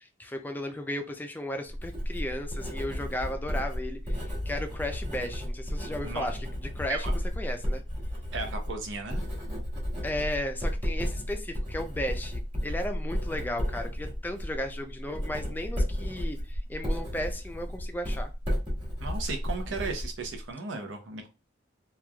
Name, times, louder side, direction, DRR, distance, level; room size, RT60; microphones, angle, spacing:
voice 1, 0.0-6.4 6.8-7.8 10.0-18.3, left 1 dB, 10° left, 5 dB, 0.3 m, -35 dB
Writing, 1.7-20.5, equal, 25° right, 1.2 m, -33 dB
voice 2, 8.3-9.2 19.0-21.3, right 4 dB, 75° right, 4 dB, 0.7 m, -35 dB
3.0 x 2.3 x 2.2 m, 0.30 s
head